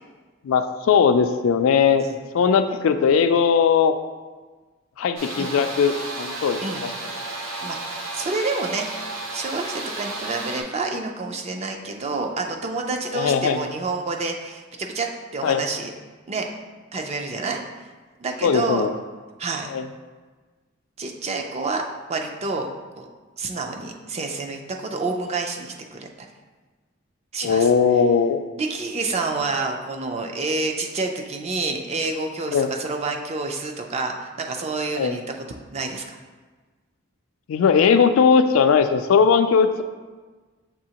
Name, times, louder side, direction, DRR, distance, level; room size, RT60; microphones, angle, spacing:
voice 1, 0.4-2.0 2.3-3.9 5.0-6.9 13.1-13.6 15.4-15.7 18.4-18.9 19.7-19.9 27.4-28.4 32.5-32.7 35.0-35.2 37.5-39.8, left 6 dB, 75° left, 9 dB, 0.3 m, -19 dB
sound 1, 5.2-10.6, right 2 dB, 80° right, 0.9 m, -33 dB
voice 2, 7.6-8.9 9.3-15.9 16.3-16.5 16.9-17.6 18.2-18.8 19.4-19.7 21.0-21.8 22.1-22.7 23.0-23.1 23.4-26.1 27.3-27.7 28.6-35.2 35.7-36.2, right 3 dB, 30° right, 3 dB, 0.4 m, -28 dB
6.7 x 2.7 x 2.9 m, 1.3 s
head